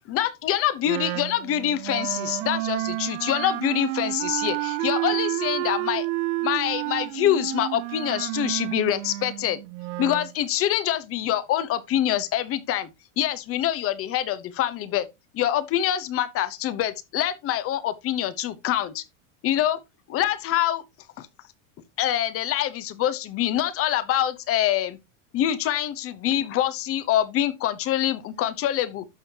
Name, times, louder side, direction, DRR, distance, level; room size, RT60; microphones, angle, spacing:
voice 1, 0.1-6.1 6.4-9.6 10.0-12.9 13.2-15.1 15.3-19.0 19.4-19.8 20.1-20.8 21.2-21.3 22.0-25.0 25.3-29.1, left 11 dB, 35° left, 1.0 m, -25 dB
Wind instrument woodwind instrument, 0.8-10.3, right 19 dB, 70° right, 0.9 m, -30 dB
11.5 x 6.3 x 2.8 m
supercardioid pair, 145°, 40 cm